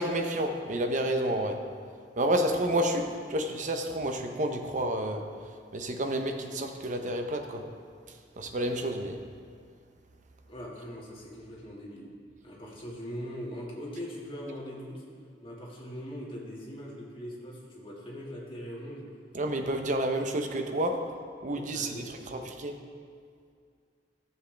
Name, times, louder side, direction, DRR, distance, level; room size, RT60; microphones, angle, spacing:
voice 1, 0.0-1.6 2.2-5.3 5.7-7.6 8.4-9.2 19.3-21.1 21.4-22.0 22.3-22.8, right 1 dB, 45° right, 5 dB, 0.8 m, -30 dB
voice 2, 10.5-12.1 12.4-15.0 15.4-19.1 21.5-22.4, equal, 30° left, -4 dB, 1.9 m, -41 dB
14.0 x 7.5 x 3.4 m, 2.2 s
head